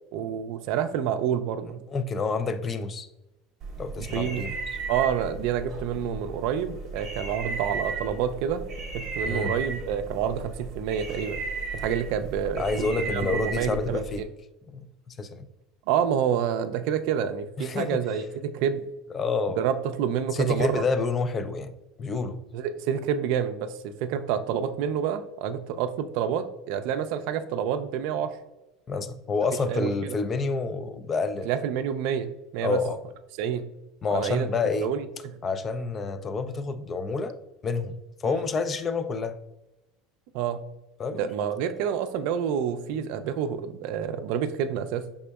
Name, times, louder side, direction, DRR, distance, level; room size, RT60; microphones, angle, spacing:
voice 1, 0.1-1.8 4.0-4.5 4.9-8.6 8.9-11.4 11.7-14.0 15.9-18.8 19.6-20.9 22.5-28.3 29.6-30.2 31.4-32.8 33.4-33.6 34.1-34.5 34.8-35.4 40.3-40.6 41.1-45.1, right 8 dB, 70° right, 10 dB, 0.4 m, -28 dB
voice 2, 1.9-3.1 3.8-4.8 9.2-9.5 12.6-14.2 14.7-15.5 17.6-18.0 19.1-19.6 20.3-21.7 22.0-22.4 28.9-31.5 32.6-33.0 34.0-34.9 35.4-37.4 37.6-39.4 41.0-41.3, left 4 dB, 30° left, 11 dB, 0.3 m, -28 dB
sound 1, 3.6-14.2, right 4 dB, 45° right, 0.9 m, -35 dB
5.1 x 3.5 x 2.3 m, 0.97 s
supercardioid pair, 115°, 0 cm